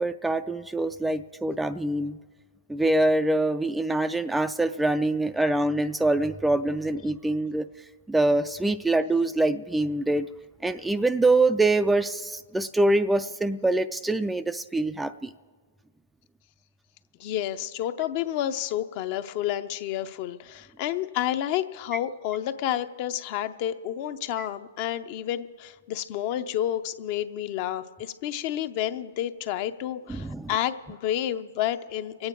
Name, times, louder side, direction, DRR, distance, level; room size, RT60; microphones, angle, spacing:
voice 1, 0.0-2.2 2.7-7.7 8.1-10.3 10.6-15.3 24.4-24.5 30.2-30.5, right 2 dB, 5° right, 10 dB, 0.3 m, -24 dB
voice 2, 17.2-32.3, left 11 dB, 45° left, 11 dB, 0.6 m, -30 dB
24.5 x 8.8 x 4.5 m, 1.5 s
hypercardioid pair, 130°, 0 cm